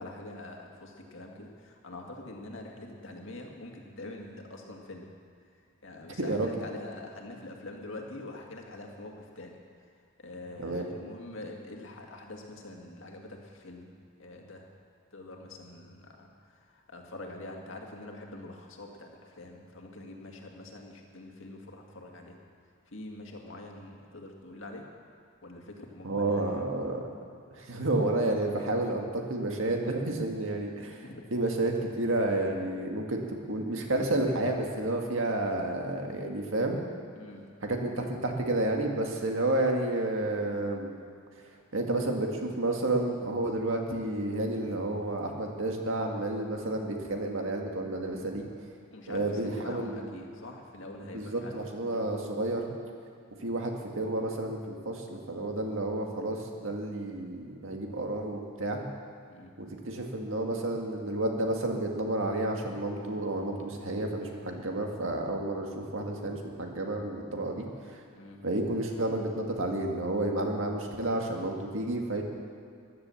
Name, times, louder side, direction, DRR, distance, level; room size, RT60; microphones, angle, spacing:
voice 1, 0.0-5.1 5.8-9.6 10.2-13.9 14.2-14.7 15.1-22.4 22.9-24.9 25.4-26.7 31.0-31.2 37.1-37.5 37.9-38.1 48.9-51.6 51.8-52.1 53.4-53.5 59.3-59.5 68.2-68.5, left 2 dB, 60° left, 1 dB, 2.0 m, -45 dB
voice 2, 6.2-6.5 10.6-10.8 26.0-27.0 27.5-31.0 31.3-33.2 33.5-36.8 37.7-40.9 41.7-48.4 49.1-50.1 51.1-52.7 53.4-58.8 59.6-68.0 68.4-72.2, right 2 dB, 65° right, 2 dB, 1.9 m, -30 dB
15.0 x 11.0 x 7.1 m, 2.3 s
head